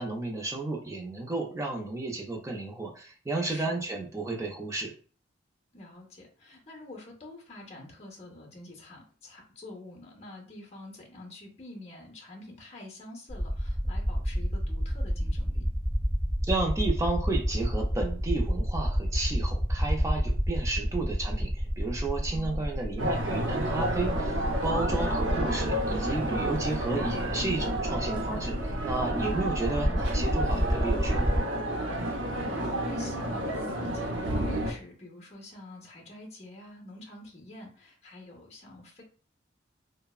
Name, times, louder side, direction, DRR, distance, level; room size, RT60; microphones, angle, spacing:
voice 1, 0.0-4.9 16.4-24.4 24.6-31.3, right 3 dB, 15° right, 1 dB, 0.4 m, -32 dB
voice 2, 3.5-3.8 5.7-15.7 22.3-22.7 29.1-29.4 31.9-39.0, left 2 dB, 30° left, 1 dB, 0.7 m, -47 dB
sound 1, 13.3-31.4, equal, 5° left, 1.3 m, -30 dB
sound 2, 23.0-34.7, right 1 dB, 80° right, 0.5 m, -31 dB
3.3 x 2.0 x 2.3 m, 0.41 s
head